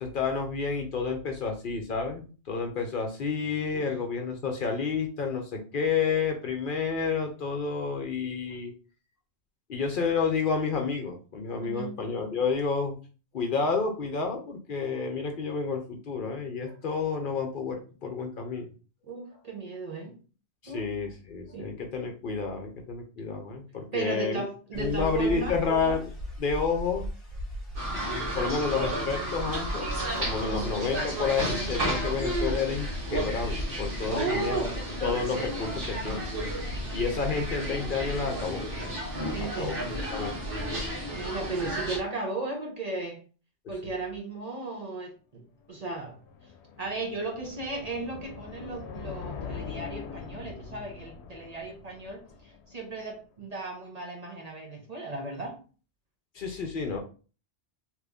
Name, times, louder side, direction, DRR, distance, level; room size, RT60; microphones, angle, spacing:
voice 1, 0.0-8.7 9.7-13.0 13.3-18.6 20.6-24.4 24.7-26.1 26.4-27.1 28.3-29.9 30.1-34.6 35.0-36.2 36.9-38.6 39.4-39.7 40.1-40.3 56.3-57.0, left 5 dB, 55° left, 3 dB, 0.8 m, -30 dB
voice 2, 11.6-12.0 19.1-20.2 20.7-20.9 21.5-21.8 23.9-25.6 30.4-30.7 34.0-34.8 39.3-39.8 41.1-43.2 43.7-45.4 45.7-46.2 46.8-55.6, right 3 dB, 40° right, 0 dB, 0.8 m, -35 dB
sound 1, 24.7-40.9, equal, 35° left, 1.2 m, -39 dB
sound 2, 27.8-42.0, right 1 dB, 55° right, 1.2 m, -33 dB
sound 3, 45.6-53.0, left 6 dB, 85° left, 0.9 m, -42 dB
2.9 x 2.6 x 3.4 m, 0.36 s
omnidirectional pair, 1.1 m